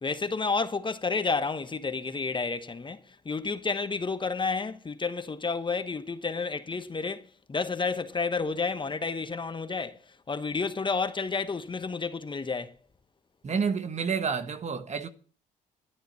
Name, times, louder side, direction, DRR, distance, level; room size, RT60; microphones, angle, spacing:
voice 1, 0.0-3.0 3.2-10.0 10.3-12.7, left 4 dB, 30° left, 1.2 m, -30 dB
voice 2, 13.4-15.1, right 6 dB, 45° right, 1.4 m, -29 dB
12.0 x 10.0 x 5.7 m
supercardioid pair, 60°, 17 cm